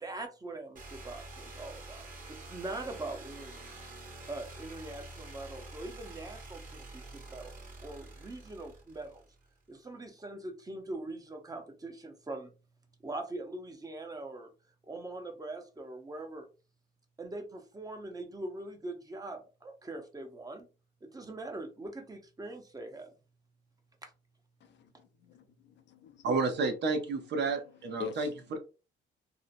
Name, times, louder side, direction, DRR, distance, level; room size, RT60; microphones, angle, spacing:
voice 1, 0.0-2.1 2.4-3.6 4.3-6.9 7.1-7.6 7.8-9.2 9.7-12.5 13.0-14.5 14.8-16.5 17.2-20.7 21.0-23.1 24.0-24.1, right 2 dB, 20° right, 0.7 m, -42 dB
sound 1, 0.7-9.5, right 2 dB, 40° right, 1.3 m, -47 dB
voice 2, 24.6-26.3 28.0-28.3, left 7 dB, 65° left, 0.5 m, -45 dB
voice 3, 26.2-28.6, right 4 dB, 60° right, 0.7 m, -31 dB
2.7 x 2.0 x 2.6 m
cardioid pair, 90°, 20 cm